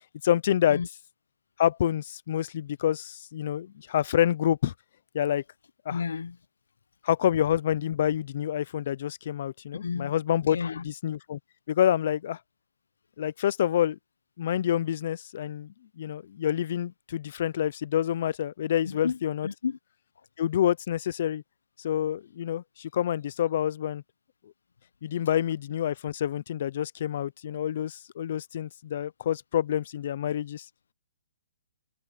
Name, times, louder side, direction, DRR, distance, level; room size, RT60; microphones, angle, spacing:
voice 1, 0.2-0.8 1.6-4.7 5.1-5.4 5.9-6.0 7.0-11.4 11.7-12.4 13.2-14.0 14.4-19.5 20.4-21.4 21.8-24.0 25.0-30.7, left 10 dB, 40° left, 0.5 m, -27 dB
voice 2, 5.9-6.4 9.7-10.2 10.4-10.9 18.9-19.8, left 5 dB, 80° left, 0.8 m, -32 dB
hypercardioid pair, 170°, 0 cm